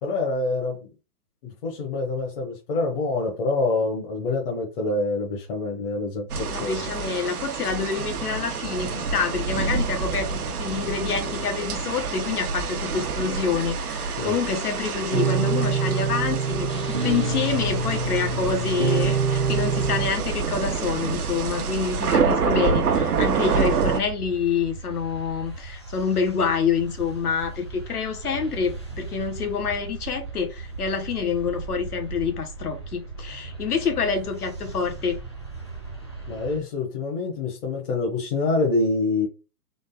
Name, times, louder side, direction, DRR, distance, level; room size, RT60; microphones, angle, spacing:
voice 1, 0.0-0.9 1.4-6.8 14.2-14.3 36.3-39.3, left 3 dB, 35° left, 1.4 m, -26 dB
sound 1, 6.3-24.0, right 5 dB, 70° right, 0.9 m, -27 dB
voice 2, 6.5-35.2, left 6 dB, 70° left, 1.4 m, -27 dB
sound 2, 15.1-20.1, right 4 dB, 25° right, 0.6 m, -25 dB
sound 3, 16.7-36.6, right 4 dB, 20° left, 0.4 m, -38 dB
4.0 x 3.2 x 3.7 m
hypercardioid pair, 155°, 46 cm